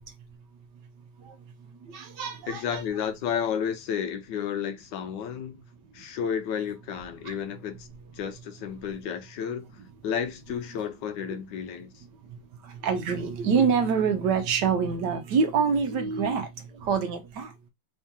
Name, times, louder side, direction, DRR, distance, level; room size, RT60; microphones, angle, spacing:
voice 1, 1.9-2.8 7.2-7.3 12.6-16.5 16.8-17.5, right 6 dB, 70° right, 1.2 m, -26 dB
voice 2, 2.5-5.6 5.9-7.9 8.1-9.7 10.0-12.0, left 8 dB, 75° left, 1.2 m, -32 dB
3.6 x 2.8 x 3.5 m
omnidirectional pair, 2.1 m